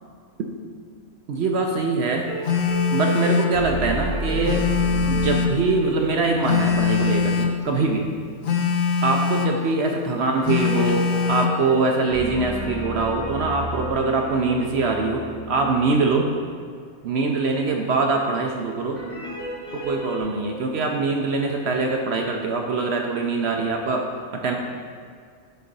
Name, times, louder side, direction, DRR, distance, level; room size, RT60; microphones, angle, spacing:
voice 1, 1.3-2.3 2.9-4.7 5.0-8.1 9.0-16.3 17.0-19.0 19.7-24.5, right 3 dB, 60° right, 2 dB, 0.7 m, -23 dB
sound 1, 2.3-7.9 10.4-16.3 19.0-20.2, right 1 dB, 40° left, 2.0 m, -33 dB
Telephone, 2.4-3.6 4.4-5.6 6.4-7.6 8.4-9.6 10.4-11.6, left 5 dB, 85° left, 0.4 m, -22 dB
6.5 x 3.9 x 5.2 m, 2.1 s
omnidirectional pair, 1.5 m